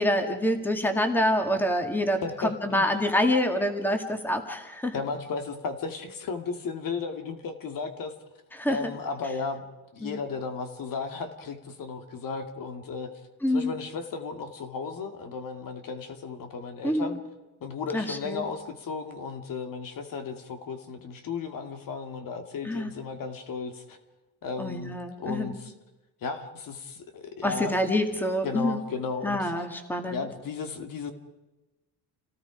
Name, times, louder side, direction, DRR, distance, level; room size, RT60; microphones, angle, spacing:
voice 1, 0.0-4.9 8.6-8.9 10.0-10.2 13.4-13.7 16.8-17.1 17.9-18.4 22.6-22.9 24.6-25.6 27.4-28.8 29.2-30.2, left 1 dB, 5° left, 5 dB, 2.2 m, -26 dB
voice 2, 2.2-2.9 4.9-8.2 8.7-9.6 9.9-13.1 13.5-17.2 17.6-24.0 24.4-25.7 26.2-27.8 28.4-29.5 30.1-31.1, left 4 dB, 55° left, 7 dB, 2.3 m, -35 dB
29.0 x 18.0 x 5.1 m, 1.1 s
cardioid pair, 130°, 41 cm